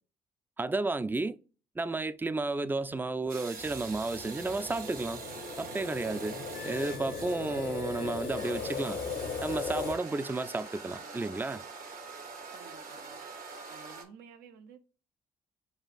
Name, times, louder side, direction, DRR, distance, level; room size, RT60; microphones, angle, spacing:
voice 1, 0.6-1.4 1.8-5.2 5.6-9.0 9.4-11.6, right 3 dB, 10° right, 0.3 m, -32 dB
sound 1, 3.3-14.0, right 4 dB, 60° right, 1.0 m, -44 dB
sound 2, 3.6-10.0, left 5 dB, 60° left, 0.7 m, -38 dB
Wind instrument woodwind instrument, 6.5-8.5, left 7 dB, 90° left, 0.4 m, -49 dB
voice 2, 12.5-14.8, right 7 dB, 75° right, 0.6 m, -54 dB
6.2 x 2.4 x 2.4 m
hypercardioid pair, 45°, 16 cm